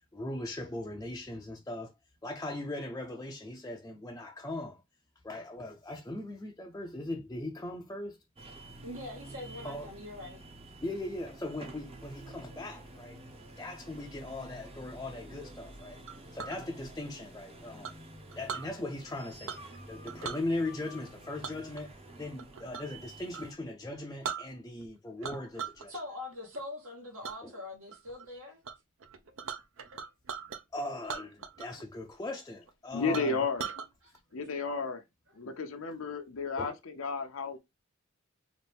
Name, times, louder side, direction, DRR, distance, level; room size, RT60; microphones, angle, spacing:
voice 1, 0.1-1.9 2.2-4.8 5.2-8.2 9.6-9.9 10.8-13.2 13.6-16.0 16.3-18.0 18.4-25.9 27.4-27.5 30.7-33.4 36.6-36.7, left 2 dB, 15° left, 0.5 m, -39 dB
sound 1, 8.4-23.5, right 1 dB, 25° right, 0.7 m, -49 dB
voice 2, 8.8-10.4 25.9-28.6 34.0-34.1, left 2 dB, 80° right, 1.6 m, -43 dB
Chink clink, 16.1-16.6 17.8-18.7 19.4-19.8 20.1-20.4 21.4-23.0 23.3-23.5 23.9-24.0 24.2-24.9 25.2-25.9 26.2-26.6 27.2-27.4 27.9-28.3 28.6-28.7 29.0-30.6 31.0-31.8 32.1-32.2 32.7-32.8 33.1-33.9, right 6 dB, 65° right, 0.6 m, -40 dB
voice 3, 32.9-33.7 34.3-35.0 35.3-37.6, left 4 dB, 70° left, 0.6 m, -33 dB
4.1 x 2.6 x 3.4 m
head